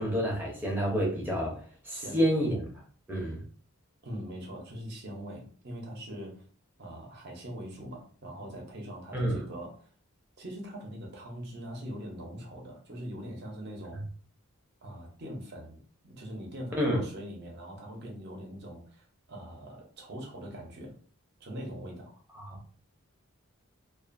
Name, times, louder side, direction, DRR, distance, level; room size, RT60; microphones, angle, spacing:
voice 1, 0.0-2.7 3.1-3.4 9.1-9.4 16.8-17.0 22.3-22.6, equal, 10° right, 0.6 m, -29 dB
voice 2, 1.9-2.2 4.0-6.4 6.8-9.9 10.4-14.0 14.8-15.8 16.0-20.9 21.4-22.1, equal, 50° right, 0.7 m, -42 dB
2.5 x 2.4 x 2.5 m
head